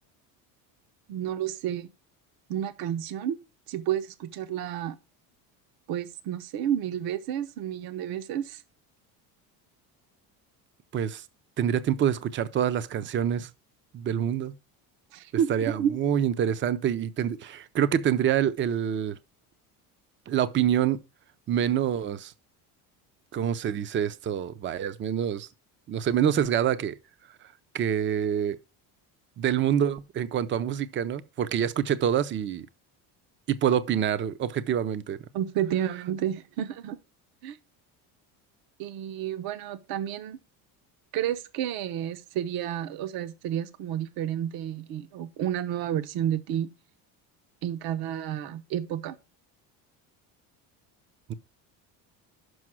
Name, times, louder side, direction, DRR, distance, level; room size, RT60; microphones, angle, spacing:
voice 1, 1.1-1.9 2.5-3.4 3.7-5.0 5.9-8.6 15.1-16.0 35.3-37.0 37.4-37.6 38.8-40.4 41.1-46.7 47.6-49.2, right 10 dB, 60° right, 0.8 m, -30 dB
voice 2, 10.9-11.2 11.6-13.5 13.9-14.5 15.5-19.2 20.3-21.0 21.5-22.3 23.3-25.5 25.9-27.0 27.7-28.6 29.4-32.7 33.5-35.2, right 9 dB, 30° right, 0.5 m, -26 dB
6.3 x 5.2 x 6.0 m
cardioid pair, 130°, 40 cm